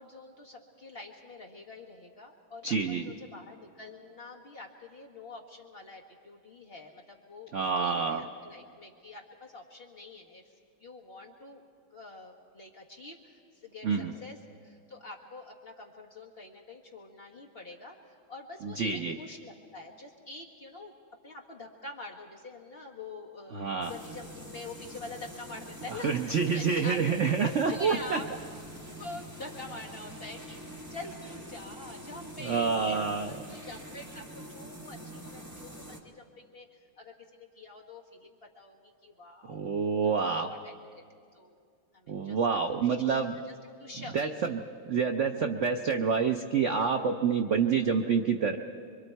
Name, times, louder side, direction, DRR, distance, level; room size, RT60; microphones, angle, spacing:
voice 1, 0.0-10.4 10.8-11.6 11.9-14.4 14.6-20.9 21.2-23.6 23.9-27.0 27.4-28.3 29.0-40.0 40.4-40.7 41.3-41.5 41.9-42.4 43.1-43.2 43.4-44.3, left 3 dB, 30° left, 0 dB, 1.4 m, -46 dB
voice 2, 2.6-3.1 7.5-8.2 13.8-14.1 18.6-19.2 23.5-23.9 26.0-28.2 32.4-33.6 39.5-40.5 42.1-43.3 44.1-44.6 44.9-48.6, right 5 dB, 75° right, 5 dB, 0.6 m, -28 dB
sound 1, 23.8-36.0, equal, 10° right, 1.2 m, -45 dB
25.0 x 24.0 x 4.5 m, 2.3 s
omnidirectional pair, 2.2 m